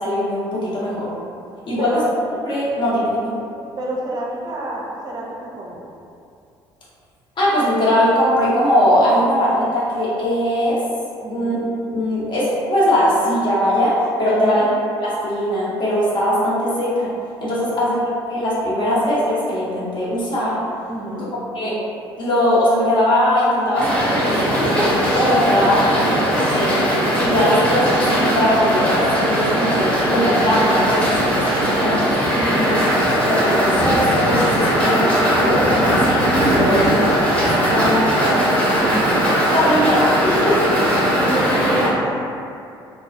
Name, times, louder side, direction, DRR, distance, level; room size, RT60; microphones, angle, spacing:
voice 1, 0.0-1.1 1.7-2.0 2.4-3.3 7.4-10.8 11.3-11.6 11.9-13.9 14.2-14.7 15.0-17.1 17.4-18.0 18.3-20.6 21.5-21.8 22.2-24.9 25.1-26.9 27.2-32.0 32.5-32.7 33.3-36.2 36.5-37.0 37.4-38.4 39.5-40.7, equal, 35° left, -8 dB, 0.8 m, -20 dB
voice 2, 1.8-2.1 3.8-5.8 11.2-11.6 14.4-14.7 17.6-17.9 20.9-21.3 25.5-25.7 32.3-32.9 36.6-37.0 38.8-39.3 41.1-42.2, right 1 dB, 30° right, -3 dB, 0.5 m, -28 dB
sound 1, 23.7-41.9, equal, 10° left, 0.9 m, -19 dB
2.2 x 2.1 x 2.6 m, 2.5 s
figure-of-eight pair, 55°, 13 cm